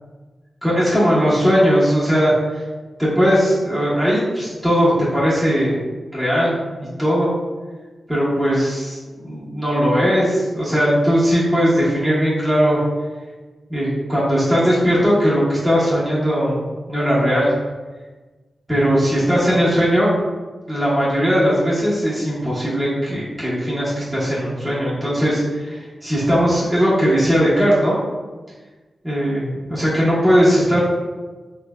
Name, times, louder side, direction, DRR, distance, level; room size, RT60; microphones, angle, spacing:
voice 1, 0.6-2.6 3.0-5.8 6.1-6.5 7.0-7.3 8.1-12.8 13.7-16.6 16.9-17.5 18.7-20.1 20.7-28.0 29.0-30.8, equal, 10° right, -9 dB, 1.0 m, -18 dB
3.1 x 2.2 x 2.2 m, 1.3 s
cardioid pair, 50°, 0 cm